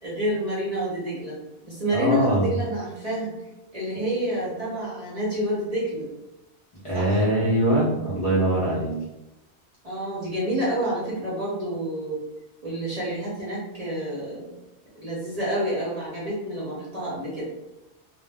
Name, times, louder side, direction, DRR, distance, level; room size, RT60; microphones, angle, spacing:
voice 1, 0.0-1.4 1.6-3.3 3.7-6.1 6.9-7.3 9.8-12.2 12.6-14.5 14.9-17.5, equal, 40° right, -7 dB, 0.7 m, -28 dB
voice 2, 1.9-2.5 6.8-8.9, right 1 dB, 35° left, -9 dB, 0.6 m, -22 dB
2.1 x 2.1 x 3.4 m, 0.96 s
omnidirectional pair, 1.2 m